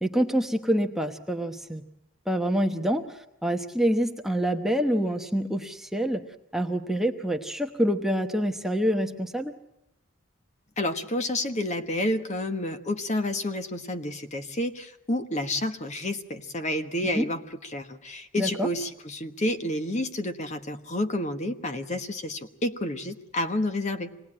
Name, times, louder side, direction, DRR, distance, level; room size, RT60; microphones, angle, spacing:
voice 1, 0.0-1.8 2.3-6.2 6.5-9.5 17.0-17.3 18.4-18.7, equal, ahead, 4 dB, 1.0 m, -26 dB
voice 2, 10.8-17.4 17.7-24.1, left 1 dB, 35° left, 8 dB, 1.3 m, -30 dB
26.0 x 19.5 x 8.7 m, 0.80 s
head